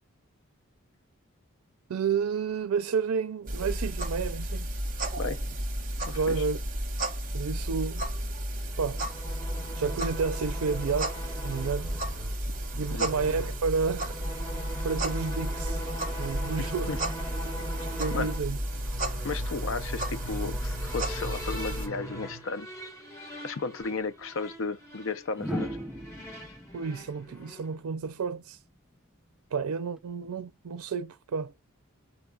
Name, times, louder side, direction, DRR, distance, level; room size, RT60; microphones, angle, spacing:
voice 1, 1.9-4.7 6.1-6.6 7.3-8.0 8.8-9.0 9.8-11.2 11.4-11.9 12.8-14.2 14.8-15.8 16.2-17.0 18.0-18.6 26.7-28.6 29.5-31.5, right 5 dB, 85° right, 0.4 m, -30 dB
sound 1, 3.5-21.9, right 1 dB, 35° right, 0.9 m, -33 dB
voice 2, 6.1-6.4 12.9-13.1 16.6-17.0 18.1-18.3 19.2-22.7 23.4-25.8, left 4 dB, 60° left, 0.5 m, -34 dB
sound 2, 8.7-27.8, equal, 15° left, 1.2 m, -41 dB
sound 3, 23.8-24.0 25.3-28.4 30.0-30.3, equal, 5° right, 0.4 m, -38 dB
4.9 x 2.3 x 3.8 m
head